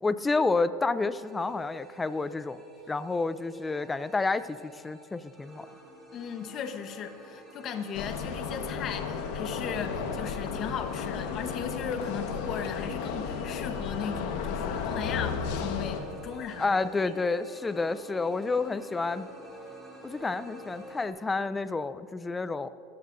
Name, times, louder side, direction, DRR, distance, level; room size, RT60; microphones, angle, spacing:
voice 1, 0.0-2.6 2.9-5.7 16.6-19.3 20.0-22.7, left 3 dB, 15° left, 14 dB, 0.5 m, -29 dB
sound 1, 1.2-21.1, equal, 5° right, 3.1 m, -48 dB
voice 2, 6.1-16.8, left 7 dB, 40° left, 7 dB, 1.1 m, -37 dB
sound 2, 7.9-16.0, left 6 dB, 65° left, 1.4 m, -33 dB
26.0 x 14.5 x 2.7 m, 2.5 s
supercardioid pair, 130°, 0 cm